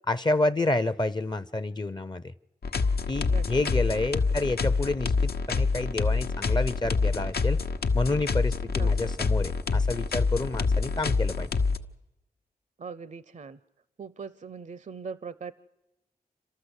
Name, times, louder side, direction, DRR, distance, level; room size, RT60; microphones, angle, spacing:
voice 1, 0.1-2.3 3.1-7.6 7.9-11.5, left 2 dB, 25° left, 14 dB, 0.6 m, -29 dB
sound 1, 2.6-11.8, left 4 dB, 75° left, 1.0 m, -26 dB
voice 2, 3.3-3.7 8.8-8.9 12.8-13.6 14.0-15.5, right 5 dB, 50° right, 17 dB, 0.6 m, -40 dB
29.0 x 13.0 x 8.1 m, 0.98 s
wide cardioid pair, 70°, 16 cm